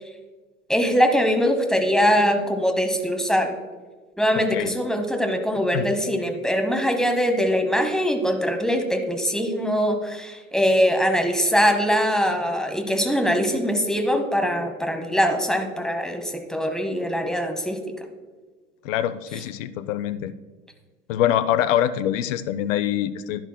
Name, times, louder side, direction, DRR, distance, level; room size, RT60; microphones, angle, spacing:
voice 1, 0.7-3.5 4.2-17.8, equal, ahead, 5 dB, 1.0 m, -22 dB
voice 2, 4.4-4.7 5.7-5.9 18.8-20.3 21.1-23.4, left 11 dB, 65° left, 14 dB, 0.6 m, -24 dB
11.0 x 10.5 x 2.2 m, 1.3 s
figure-of-eight pair, 75°, 41 cm